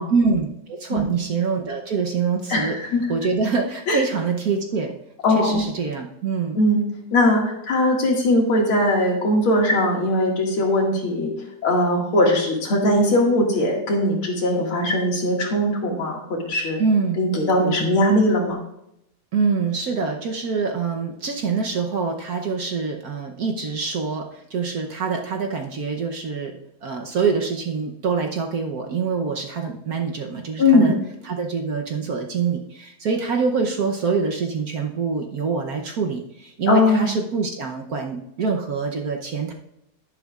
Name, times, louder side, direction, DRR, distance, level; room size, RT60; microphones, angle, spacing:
voice 1, 0.1-2.8 3.1-4.9 5.3-6.6 16.8-17.3 19.3-31.0 31.2-39.5, right 5 dB, 55° right, 2 dB, 1.1 m, -25 dB
voice 2, 2.5-3.1 3.9-4.0 5.2-5.6 6.5-6.8 7.1-11.3 11.6-16.8 17.2-18.6 30.6-30.9 36.7-37.1, left 1 dB, 90° left, -1 dB, 2.9 m, -20 dB
11.0 x 11.0 x 2.4 m, 0.81 s
omnidirectional pair, 2.3 m